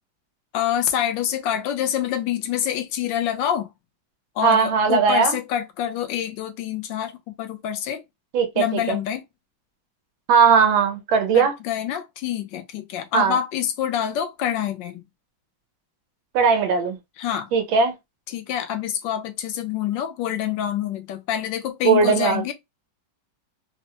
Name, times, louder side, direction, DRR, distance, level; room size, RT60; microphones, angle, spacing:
voice 1, 0.5-3.7 4.4-7.1 7.4-8.0 8.6-9.2 11.3-15.0 17.2-17.5 18.3-22.5, left 10 dB, 75° left, 1.3 m, -26 dB
voice 2, 4.4-5.4 8.3-9.0 10.3-11.5 13.1-13.4 16.3-17.0 17.5-17.9 21.8-22.5, right 6 dB, 80° right, 1.6 m, -18 dB
4.2 x 2.0 x 2.8 m
omnidirectional pair, 2.1 m